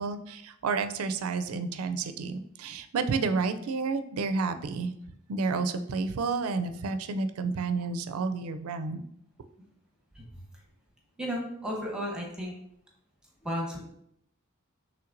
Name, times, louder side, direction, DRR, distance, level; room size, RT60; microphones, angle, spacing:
voice 1, 0.0-4.9 5.3-9.1, right 4 dB, 80° right, 10 dB, 0.4 m, -30 dB
voice 2, 11.2-12.5 13.4-13.8, equal, 5° right, -2 dB, 0.9 m, -33 dB
5.7 x 3.2 x 2.6 m, 0.74 s
head